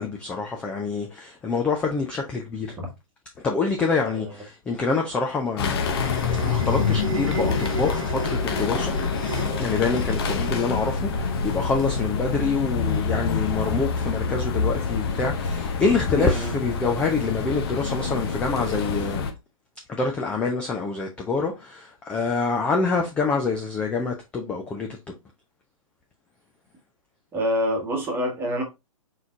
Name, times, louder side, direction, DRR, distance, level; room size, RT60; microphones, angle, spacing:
voice 1, 0.0-2.8 3.4-5.9 6.4-8.9 9.6-19.3 19.9-24.9, left 4 dB, 5° left, 0.3 m, -26 dB
sound 1, 4.9-13.7, right 6 dB, 65° right, 0.6 m, -36 dB
sound 2, 5.6-19.3, left 5 dB, 45° left, 0.8 m, -26 dB
voice 2, 16.2-16.5 27.3-28.6, equal, 10° right, 1.3 m, -26 dB
4.5 x 3.9 x 2.4 m
hypercardioid pair, 130°, 18 cm